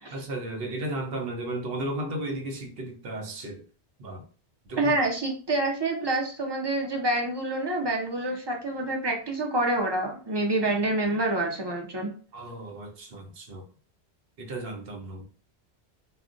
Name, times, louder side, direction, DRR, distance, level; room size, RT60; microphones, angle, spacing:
voice 1, 0.1-3.6 4.0-4.2 4.7-4.9 12.3-13.6 14.4-15.2, right 1 dB, 65° right, 0.9 m, -34 dB
voice 2, 4.8-12.1, right 2 dB, 40° right, 0.3 m, -27 dB
2.4 x 2.1 x 3.7 m
omnidirectional pair, 1.1 m